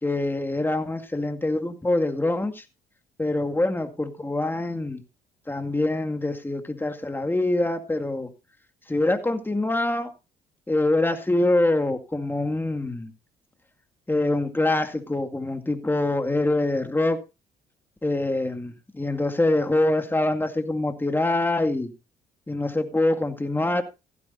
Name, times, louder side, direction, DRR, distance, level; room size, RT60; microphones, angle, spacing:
voice 1, 0.0-2.6 3.2-5.0 5.5-8.3 8.9-10.1 10.7-13.1 14.1-17.2 18.0-21.9 22.5-23.8, left 2 dB, 10° left, 6 dB, 2.2 m, -24 dB
15.5 x 13.0 x 2.6 m, 0.28 s
supercardioid pair, 65°, 17 cm